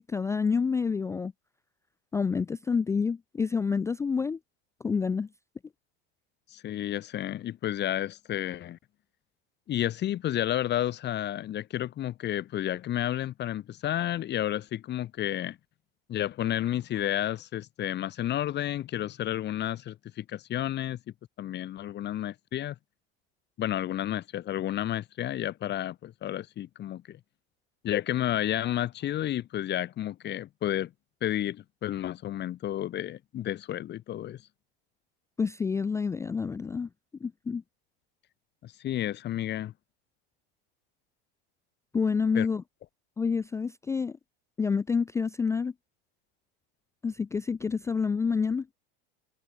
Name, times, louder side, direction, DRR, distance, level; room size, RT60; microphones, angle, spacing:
voice 1, 0.0-1.3 2.1-4.4 4.8-5.3 35.4-36.9 37.2-37.6 41.9-42.6 43.2-44.2 44.6-45.7 47.0-48.7, left 5 dB, 10° left, 0.3 m, -28 dB
voice 2, 6.5-8.8 9.7-15.6 16.1-21.0 21.4-22.8 23.6-27.2 27.8-30.9 31.2-34.4 38.6-39.7 42.3-42.5, left 12 dB, 35° left, 2.4 m, -31 dB
supercardioid pair, 130°, 30 cm